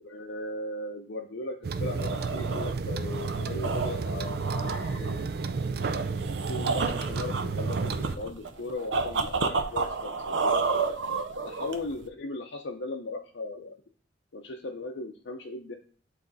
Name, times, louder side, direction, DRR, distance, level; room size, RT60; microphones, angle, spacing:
voice 1, 0.0-5.3 6.5-10.6 11.4-13.7 14.3-15.7, left 2 dB, 75° left, 0 dB, 0.7 m, -37 dB
sound 1, 1.6-8.2, right 4 dB, 55° right, 0.4 m, -31 dB
sound 2, 1.9-12.1, right 4 dB, 80° right, 0.7 m, -31 dB
9.7 x 3.3 x 4.0 m, 0.42 s
head